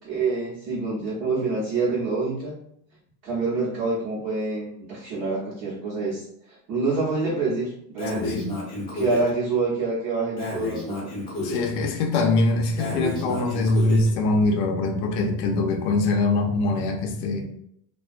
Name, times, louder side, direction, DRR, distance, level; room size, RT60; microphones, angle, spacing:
voice 1, 0.0-2.6 3.2-8.4 8.9-11.1, right 3 dB, 55° right, -7 dB, 1.0 m, -27 dB
Breathing, 8.0-9.3 10.4-11.7 12.8-14.1, left 1 dB, 10° left, 0.7 m, -31 dB
voice 2, 8.2-8.5 11.4-17.4, left 2 dB, 45° left, 4 dB, 0.5 m, -23 dB
2.3 x 2.3 x 2.5 m, 0.70 s
supercardioid pair, 145°, 49 cm